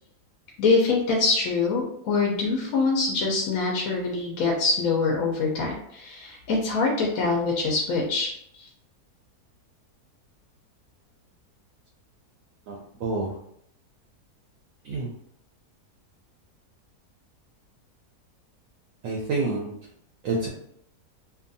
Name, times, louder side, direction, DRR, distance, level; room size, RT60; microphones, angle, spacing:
voice 1, 0.6-8.7, left 3 dB, 70° left, -1 dB, 0.9 m, -24 dB
voice 2, 12.7-13.4 14.8-15.1 19.0-19.7 20.2-20.5, right 3 dB, 70° right, -2 dB, 0.8 m, -28 dB
2.8 x 2.4 x 2.5 m, 0.71 s
omnidirectional pair, 1.7 m